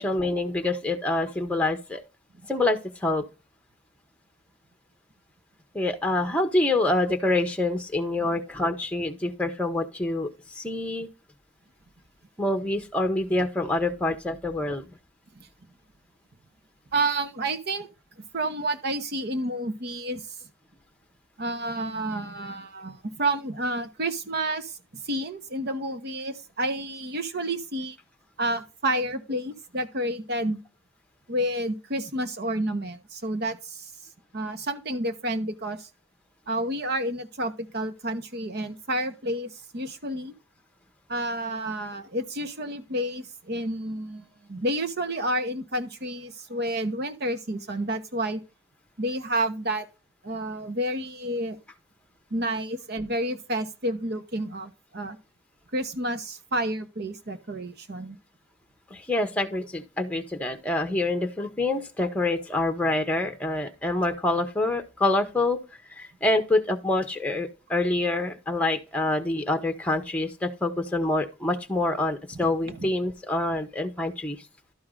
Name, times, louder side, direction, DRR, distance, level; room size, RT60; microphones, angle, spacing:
voice 1, 0.0-2.0 2.5-3.2 5.7-11.1 12.4-14.9 58.9-65.6 65.9-74.4, left 2 dB, 5° left, 1.0 m, -26 dB
voice 2, 16.9-17.9 18.3-20.2 21.4-24.8 25.0-28.0 28.4-30.6 31.3-33.9 34.3-35.9 36.5-40.3 41.1-48.4 49.0-49.9 50.2-51.6 52.3-55.2 55.7-58.2 61.4-61.5 72.7-72.8, right 1 dB, 55° right, 1.0 m, -30 dB
12.0 x 4.7 x 3.8 m
head